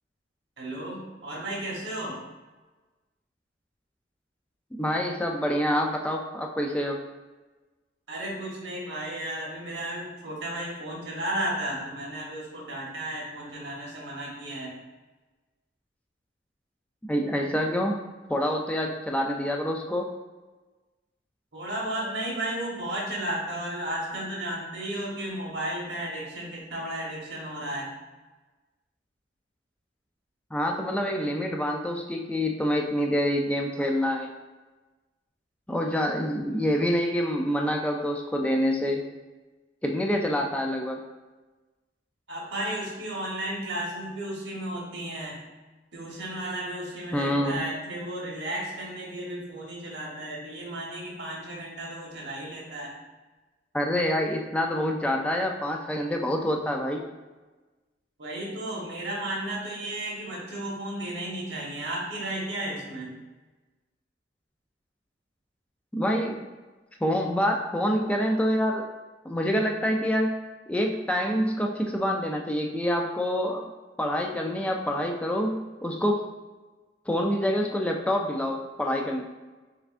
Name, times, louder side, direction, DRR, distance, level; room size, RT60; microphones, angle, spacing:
voice 1, 0.6-2.2 8.1-14.7 21.5-27.9 42.3-45.4 45.9-52.9 58.2-63.2, right 1 dB, 75° right, -3 dB, 1.2 m, -34 dB
voice 2, 4.8-7.0 17.1-20.1 30.5-34.3 35.7-39.0 39.8-41.0 47.1-47.6 53.7-57.1 65.9-66.4 67.0-68.8 69.2-70.3 70.7-73.6 74.0-76.2 77.1-79.2, equal, 5° left, 1 dB, 0.3 m, -26 dB
4.9 x 3.3 x 2.5 m, 1.2 s
head